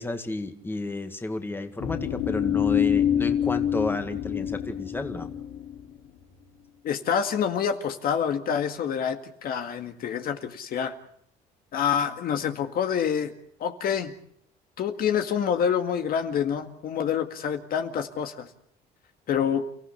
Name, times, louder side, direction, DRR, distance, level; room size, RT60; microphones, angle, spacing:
voice 1, 0.0-5.3, left 2 dB, 15° left, 6 dB, 2.0 m, -32 dB
sound 1, 1.8-6.0, left 9 dB, 80° left, 3.3 m, -26 dB
voice 2, 6.8-10.9 11.7-13.3 13.6-14.1 14.8-18.5 19.3-19.6, left 8 dB, 60° left, 6 dB, 1.9 m, -27 dB
29.5 x 15.0 x 8.4 m, 0.68 s
cardioid pair, 110°, 17 cm